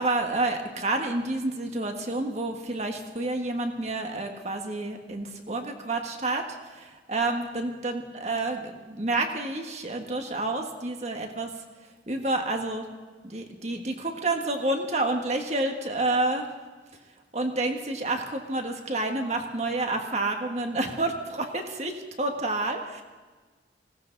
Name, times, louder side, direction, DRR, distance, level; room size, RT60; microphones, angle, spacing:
voice 1, 0.0-6.4 6.7-11.5 12.1-12.9 13.2-16.4 17.3-23.0, right 2 dB, 40° right, 4 dB, 1.7 m, -29 dB
19.5 x 17.5 x 4.1 m, 1.4 s
head